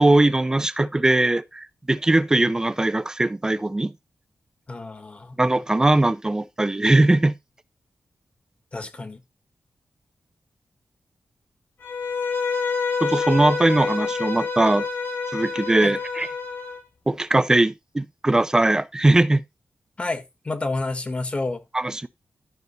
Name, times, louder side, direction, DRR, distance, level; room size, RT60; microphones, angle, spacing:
voice 1, 0.0-3.9 5.4-7.3 13.0-14.9 15.3-16.3 17.1-19.4 21.7-22.1, right 2 dB, 15° right, 0.7 m, -20 dB
voice 2, 4.7-5.4 8.7-9.2 15.8-15.9 20.0-21.6, left 2 dB, 30° left, 1.6 m, -29 dB
Bowed string instrument, 11.8-16.8, left 5 dB, 70° left, 6.6 m, -27 dB
12.0 x 6.4 x 4.1 m
wide cardioid pair, 130°, 4 cm